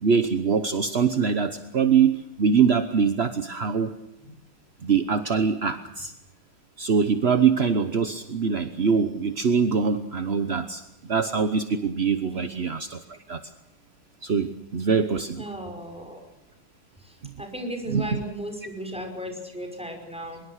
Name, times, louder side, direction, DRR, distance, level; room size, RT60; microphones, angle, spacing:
voice 1, 0.0-3.9 4.8-6.1 6.8-13.4 14.2-15.4 17.9-18.2, right 6 dB, 45° right, 10 dB, 0.9 m, -23 dB
voice 2, 15.4-16.2 17.0-20.4, right 1 dB, 5° right, 4 dB, 5.6 m, -36 dB
24.0 x 22.5 x 6.5 m, 0.91 s
omnidirectional pair, 2.3 m